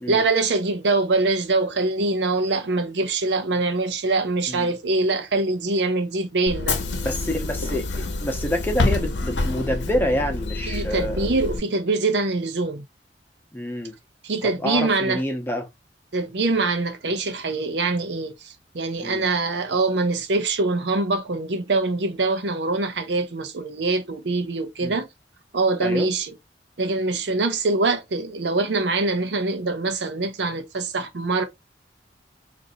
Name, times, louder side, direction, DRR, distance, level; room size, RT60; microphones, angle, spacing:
voice 1, 0.1-6.8 10.7-12.9 14.2-15.2 16.1-25.1 25.5-26.3 26.8-31.5, right 3 dB, 75° right, 0.7 m, -24 dB
Bus / Engine, 6.5-11.6, left 2 dB, 90° left, 0.8 m, -27 dB
voice 2, 7.0-11.3 13.5-13.9 14.4-15.7 19.0-19.3 24.8-25.0 25.8-26.1, equal, 10° left, 0.9 m, -27 dB
3.8 x 2.6 x 2.7 m
head